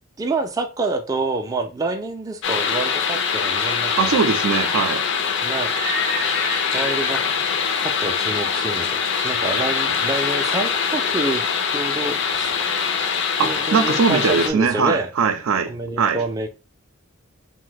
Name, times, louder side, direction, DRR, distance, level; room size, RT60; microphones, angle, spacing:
voice 1, 0.2-4.2 5.4-5.7 6.2-6.5 6.7-7.2 7.8-12.5 13.4-15.1 15.7-16.5, right 2 dB, 15° right, 0.3 m, -27 dB
sound 1, 2.4-14.5, left 6 dB, 60° left, 0.4 m, -23 dB
voice 2, 4.0-5.0 13.4-15.7 16.0-16.2, right 5 dB, 85° right, 0.4 m, -20 dB
Livestock farm animals working animals, 4.9-10.7, left 1 dB, 75° left, 0.9 m, -34 dB
2.6 x 2.1 x 3.8 m
head